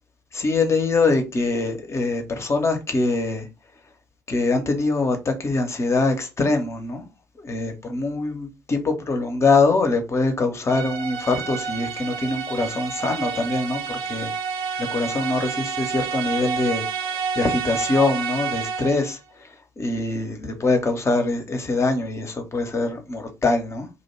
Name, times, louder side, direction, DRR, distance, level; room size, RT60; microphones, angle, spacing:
voice 1, 0.3-3.5 4.3-7.0 7.4-14.3 14.8-19.5 19.8-23.9, left 3 dB, 30° left, 0.7 m, -23 dB
sound 1, 10.7-19.1, right 6 dB, 60° right, 0.4 m, -29 dB
2.5 x 2.1 x 3.0 m
figure-of-eight pair, 50°, 9 cm